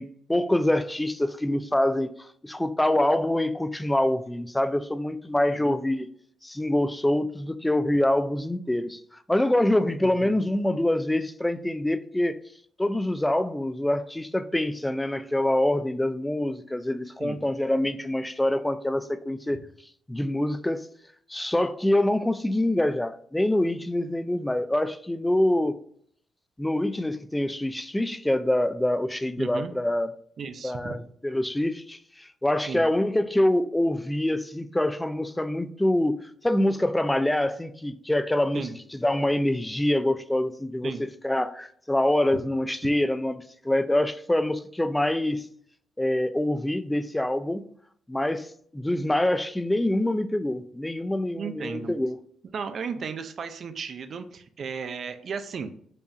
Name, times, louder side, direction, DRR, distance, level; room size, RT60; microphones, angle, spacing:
voice 1, 0.0-2.1 2.4-6.1 6.4-9.0 9.3-12.4 12.8-19.6 20.1-20.9 21.3-25.8 26.6-30.1 30.6-45.5 46.0-47.6 48.1-48.5 48.7-52.2, left 1 dB, 10° left, 0.3 m, -25 dB
voice 2, 29.4-29.7 30.4-30.9 32.6-32.8 38.5-38.7 40.8-41.0 51.4-51.9 52.5-55.7, right 6 dB, 50° right, 0.5 m, -35 dB
5.3 x 2.4 x 2.7 m
cardioid pair, 90°, 0 cm